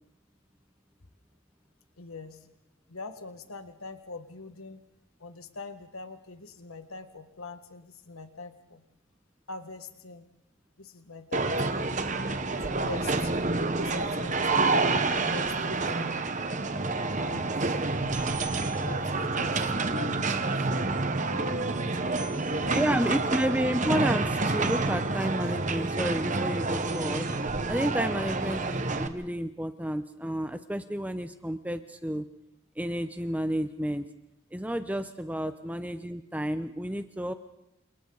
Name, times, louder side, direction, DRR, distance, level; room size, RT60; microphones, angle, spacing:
voice 1, 2.0-2.5 2.9-4.8 5.2-8.8 9.5-10.3 10.8-12.0 12.7-13.3 13.8-16.1 17.2-17.8 18.8-19.6 19.9-20.7 21.4-21.9 22.1-22.8 23.1-23.3, left 3 dB, 85° left, 7 dB, 1.8 m, -43 dB
sound 1, 11.3-29.1, right 3 dB, 35° right, 1.2 m, -28 dB
sound 2, 17.9-20.5, left 1 dB, 45° left, 2.9 m, -51 dB
voice 2, 22.7-27.3 27.7-32.3 32.8-34.0 34.5-37.3, equal, 5° right, 9 dB, 0.8 m, -31 dB
29.5 x 28.5 x 4.1 m, 0.83 s
head